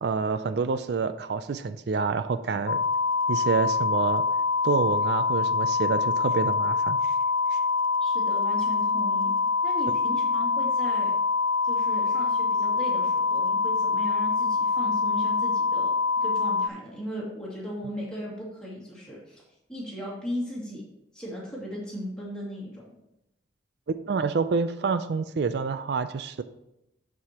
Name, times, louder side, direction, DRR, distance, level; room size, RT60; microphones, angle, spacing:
voice 1, 0.0-2.8 3.3-4.2 4.6-7.1 7.5-7.6 23.9-26.4, right 4 dB, 60° right, 12 dB, 0.4 m, -27 dB
sound 1, 2.7-16.7, left 4 dB, 70° left, 0.3 m, -25 dB
voice 2, 8.0-9.3 9.6-11.1 11.6-15.9 16.2-19.4 19.7-20.8 21.1-22.9, equal, 5° left, -6 dB, 2.4 m, -37 dB
12.5 x 4.8 x 2.9 m, 0.86 s
head